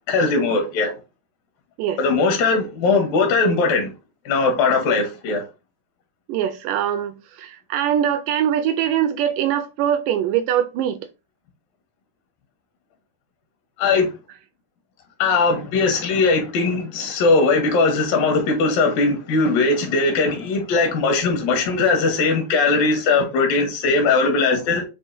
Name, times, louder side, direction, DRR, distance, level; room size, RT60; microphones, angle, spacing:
voice 1, 0.1-0.9 2.0-3.9 4.3-5.4 13.8-14.1 15.2-24.8, left 3 dB, 80° left, 2.7 m, -19 dB
voice 2, 6.3-11.0, right 10 dB, 80° right, 2.0 m, -22 dB
7.4 x 2.5 x 2.6 m
omnidirectional pair, 4.1 m